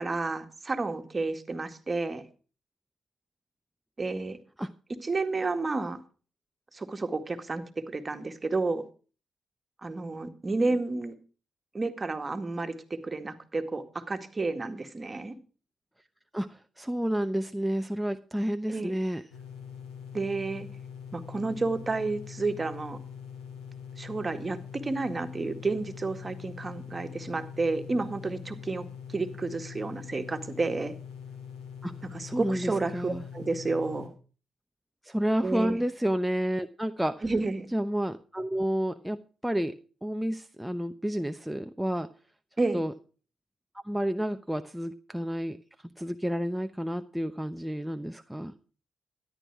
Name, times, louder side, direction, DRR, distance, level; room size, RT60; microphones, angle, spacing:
voice 1, 0.0-2.2 4.0-4.4 5.0-6.0 6.7-8.9 9.8-11.1 11.7-15.4 18.7-19.0 20.1-20.7 21.1-23.0 24.0-30.9 32.1-34.1 35.4-35.8 37.2-37.7 42.6-42.8, right 3 dB, 35° right, 7 dB, 2.0 m, -31 dB
voice 2, 16.3-19.2 31.8-31.9 32.2-33.2 35.0-37.2 37.7-42.1 42.7-42.9 43.8-45.6 46.0-48.5, equal, 5° right, 7 dB, 0.9 m, -30 dB
sound 1, 19.3-34.1, left 7 dB, 85° left, 2.9 m, -43 dB
13.0 x 11.0 x 4.8 m, 0.38 s
supercardioid pair, 50°, 0 cm